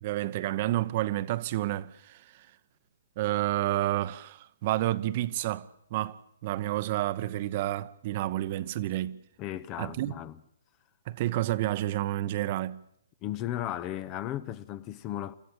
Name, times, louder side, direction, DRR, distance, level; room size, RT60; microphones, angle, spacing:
voice 1, 0.0-2.5 3.2-9.2 9.8-10.1 11.1-12.8, right 15 dB, 40° right, 0.9 m, -30 dB
voice 2, 9.4-10.4 13.2-15.3, left 12 dB, 25° left, 0.8 m, -35 dB
27.5 x 14.0 x 8.7 m
figure-of-eight pair, 130°, 0 cm